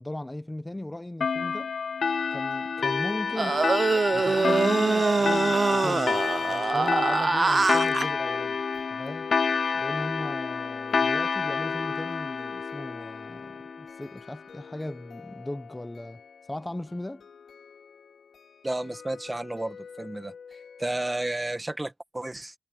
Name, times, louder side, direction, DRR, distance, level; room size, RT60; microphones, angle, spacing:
voice 1, 0.0-1.7 2.3-3.7 4.1-8.6 8.9-9.3 9.7-16.2 16.5-17.3, left 1 dB, 10° left, 1.1 m, -37 dB
sound 1, 1.2-14.3, left 5 dB, 45° left, 0.3 m, -29 dB
sound 2, 2.2-21.4, left 6 dB, 60° left, 4.3 m, -49 dB
sound 3, 3.4-8.1, right 4 dB, 30° right, 0.5 m, -24 dB
voice 2, 18.6-20.3 20.8-22.5, right 2 dB, 10° right, 1.8 m, -32 dB
wide cardioid pair, 175°, 0 cm